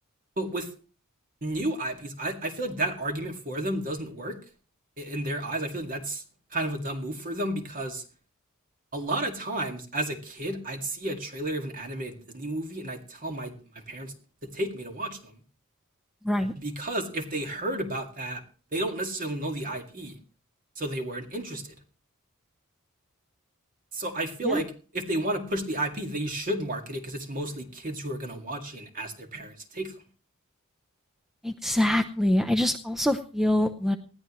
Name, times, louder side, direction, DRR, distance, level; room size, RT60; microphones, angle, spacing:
voice 1, 0.4-0.7 1.4-4.4 5.0-6.2 6.5-8.0 8.9-14.1 14.4-15.4 16.6-18.4 18.7-20.2 20.8-21.8 23.9-29.9, right 1 dB, 40° right, 5 dB, 2.1 m, -32 dB
voice 2, 31.4-34.0, left 1 dB, ahead, 8 dB, 0.6 m, -25 dB
19.5 x 14.5 x 3.1 m, 0.38 s
head